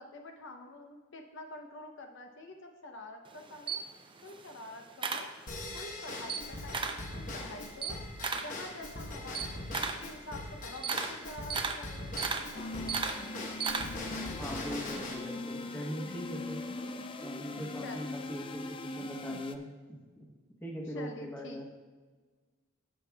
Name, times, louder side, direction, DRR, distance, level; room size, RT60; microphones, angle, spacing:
voice 1, 0.0-3.8 4.2-5.3 5.7-8.0 8.4-13.2 16.8-17.0 17.8-18.1 20.9-21.6, left 2 dB, 60° left, 3 dB, 0.8 m, -47 dB
Camera, 3.3-5.8 6.2-7.1 7.5-14.2, right 5 dB, 25° right, 0.5 m, -36 dB
Drum kit / Drum / Bell, 5.5-15.2, left 1 dB, 40° left, 1.1 m, -42 dB
sound 1, 12.5-19.6, left 2 dB, 25° left, 0.4 m, -41 dB
voice 2, 14.4-16.6 17.2-19.6 20.2-20.3 20.6-21.6, equal, 10° left, -1 dB, 1.2 m, -40 dB
14.0 x 8.1 x 2.3 m, 1.4 s
head